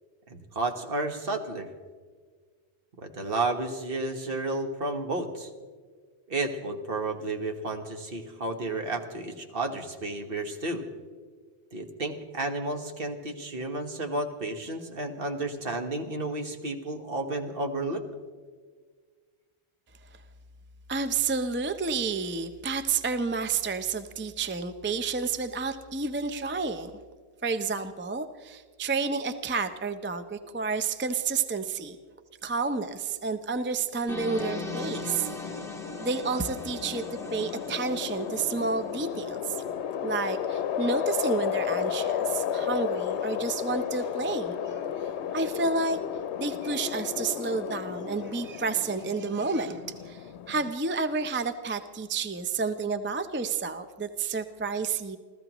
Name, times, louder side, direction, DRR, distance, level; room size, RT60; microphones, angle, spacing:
voice 1, 0.3-1.7 3.0-5.5 6.3-10.8 11.7-18.0, right 2 dB, 55° right, 5 dB, 1.4 m, -32 dB
voice 2, 20.9-26.9 27.4-32.0 32.4-35.3 36.0-37.0 37.3-39.6 40.0-46.0 46.4-49.8 50.1-55.2, right 4 dB, 15° right, 9 dB, 0.4 m, -30 dB
sound 1, 34.1-39.0, left 1 dB, 5° left, 1.2 m, -40 dB
sound 2, 34.4-50.7, left 9 dB, 85° left, 0.9 m, -33 dB
29.5 x 14.5 x 3.0 m, 1.6 s
omnidirectional pair, 1.1 m